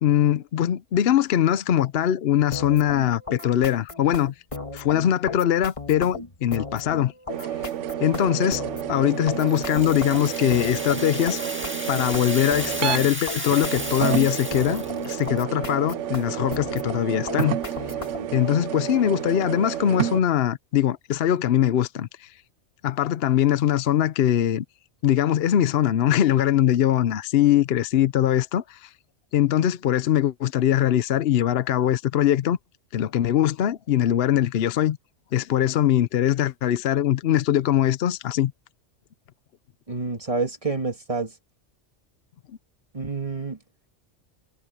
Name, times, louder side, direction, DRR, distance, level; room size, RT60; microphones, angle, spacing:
voice 1, 0.0-4.3 4.7-7.1 8.0-8.6 8.9-11.4 11.9-17.6 18.3-22.3 22.8-24.6 25.0-28.9 29.3-32.6 32.9-35.0 35.3-38.5, left 11 dB, 60° left, 0.8 m, -22 dB
sound 1, 2.5-18.4, left 3 dB, 25° left, 1.6 m, -36 dB
sound 2, 7.3-13.1 13.5-20.2, right 10 dB, 75° right, 1.0 m, -30 dB
Rattle (instrument), 9.4-15.4, right 1 dB, 10° right, 2.0 m, -34 dB
voice 2, 39.9-41.3 42.9-43.6, right 3 dB, 30° right, 1.8 m, -28 dB
omnidirectional pair, 1.3 m